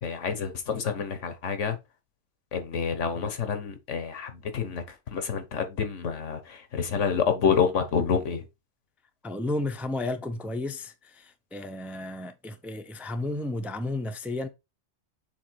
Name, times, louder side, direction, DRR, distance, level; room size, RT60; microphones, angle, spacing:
voice 1, 0.0-1.8 2.5-8.5, left 6 dB, 90° left, 1.4 m, -28 dB
voice 2, 9.2-14.5, left 2 dB, ahead, 0.4 m, -33 dB
7.0 x 3.0 x 4.6 m
omnidirectional pair, 1.2 m